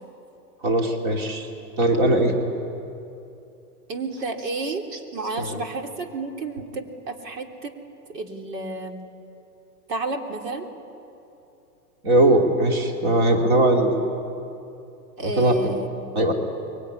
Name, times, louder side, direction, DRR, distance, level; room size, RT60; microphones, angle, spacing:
voice 1, 0.6-1.5 1.8-2.3 5.4-5.5 12.0-14.0 15.2-15.7 16.1-16.3, right 1 dB, 40° right, 2 dB, 2.8 m, -20 dB
voice 2, 3.9-7.7 8.1-9.1 9.9-10.7 15.2-16.1, right 3 dB, 90° right, 3 dB, 3.3 m, -31 dB
24.0 x 23.0 x 10.0 m, 2.8 s
supercardioid pair, 180°, 48 cm